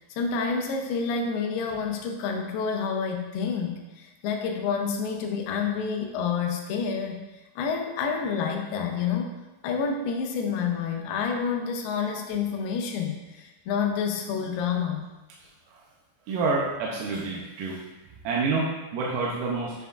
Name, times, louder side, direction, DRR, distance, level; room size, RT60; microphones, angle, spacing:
voice 1, 0.1-3.8 4.2-7.2 7.6-9.3 9.6-15.0, left 6 dB, 85° left, 3 dB, 2.7 m, -28 dB
voice 2, 16.3-17.8 18.2-19.7, right 3 dB, 75° right, -3 dB, 2.0 m, -28 dB
8.2 x 5.8 x 2.4 m, 1.1 s
omnidirectional pair, 4.5 m